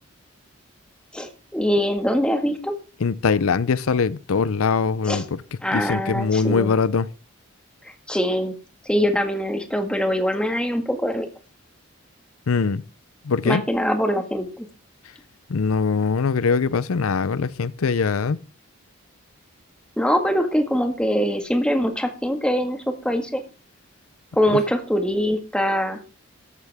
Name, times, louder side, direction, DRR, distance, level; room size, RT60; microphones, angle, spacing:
voice 1, 1.1-2.8 5.0-5.2 5.6-6.7 8.1-8.5 8.9-11.3 13.5-14.7 20.0-23.4 24.3-26.0, equal, 5° left, 1.7 m, -23 dB
voice 2, 3.0-5.4 5.7-7.1 12.5-12.8 13.3-13.6 15.5-18.4 24.5-24.6, left 5 dB, 80° left, 0.6 m, -22 dB
13.5 x 13.0 x 3.5 m
head